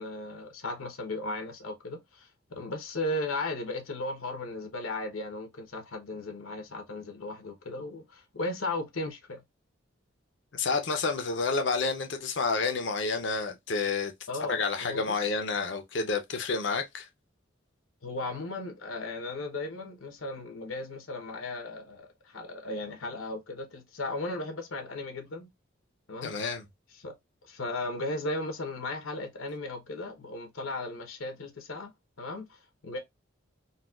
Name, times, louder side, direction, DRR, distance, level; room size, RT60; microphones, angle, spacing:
voice 1, 0.0-9.4 14.3-15.3 18.0-25.5 26.1-26.3 27.0-27.1 27.4-31.9 32.2-33.0, left 2 dB, 85° left, 0.9 m, -36 dB
voice 2, 10.5-14.1 14.5-17.1 26.2-26.6, left 4 dB, 60° left, 0.6 m, -29 dB
4.0 x 2.2 x 2.3 m
head